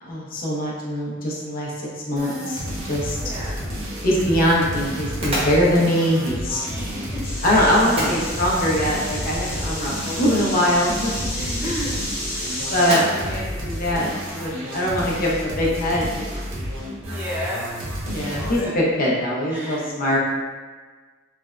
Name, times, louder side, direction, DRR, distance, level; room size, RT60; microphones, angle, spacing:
voice 1, 0.0-2.6 2.9-3.3 4.0-6.6 7.4-11.3 11.6-11.9 12.7-16.4 18.1-20.2, equal, 45° left, -5 dB, 0.6 m, -22 dB
sound 1, 2.2-18.7, equal, 85° right, 0.7 m, -31 dB
voice 2, 3.1-3.6 6.6-7.2 7.7-7.8 11.3-11.9 12.3-12.7 17.0-17.8 18.2-18.8 19.5-20.1, left 1 dB, 10° right, -7 dB, 0.3 m, -34 dB
sound 2, 3.1-14.8, equal, 30° right, 0.8 m, -34 dB
sound 3, 7.2-12.9, left 1 dB, 15° left, 0.9 m, -31 dB
3.2 x 2.1 x 2.4 m, 1.4 s
head